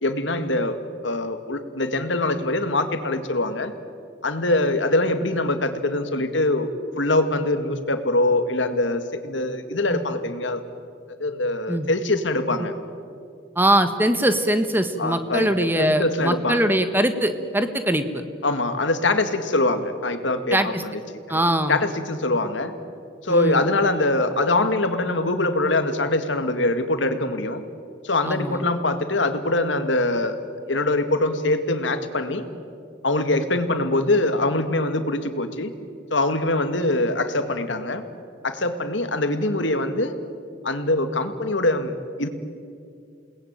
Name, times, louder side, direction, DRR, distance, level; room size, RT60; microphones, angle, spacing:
voice 1, 0.0-0.8 1.0-3.7 4.2-6.7 7.0-10.6 11.2-12.7 15.0-16.8 18.4-20.9 21.7-22.7 23.2-27.6 28.0-30.4 30.7-32.4 33.0-35.7 36.1-38.0 38.4-40.2 40.6-42.3, left 2 dB, 90° left, 8 dB, 2.1 m, -23 dB
voice 2, 13.5-18.2 20.5-20.8 21.3-21.8 23.3-23.6 28.2-28.7, right 1 dB, 10° right, 9 dB, 1.4 m, -22 dB
28.5 x 19.5 x 9.2 m, 2.3 s
head